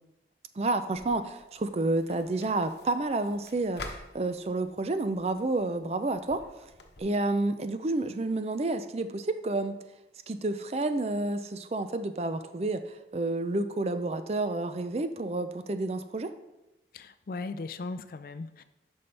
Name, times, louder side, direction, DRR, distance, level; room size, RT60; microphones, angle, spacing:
voice 1, 0.6-6.4 7.0-9.8 10.3-16.3, right 2 dB, 35° right, 10 dB, 0.4 m, -30 dB
sound 1, 0.9-7.0, left 2 dB, 70° left, 0.9 m, -49 dB
voice 2, 16.9-18.6, left 3 dB, 55° left, 12 dB, 0.4 m, -38 dB
11.0 x 5.4 x 3.3 m, 0.98 s
head